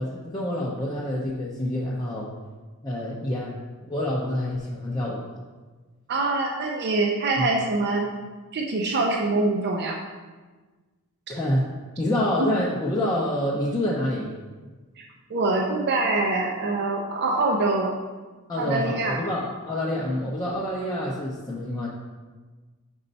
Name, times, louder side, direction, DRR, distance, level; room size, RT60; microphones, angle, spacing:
voice 1, 0.0-2.3 2.8-3.6 3.9-5.3 7.4-7.5 11.3-11.7 12.0-14.3 18.5-21.9, left 1 dB, 15° left, -6 dB, 0.6 m, -27 dB
voice 2, 6.1-8.1 8.5-10.0 12.4-12.6 15.0-15.1 15.3-17.9 18.6-19.2, right 2 dB, 50° right, 0 dB, 0.5 m, -24 dB
5.4 x 4.3 x 4.0 m, 1.3 s
head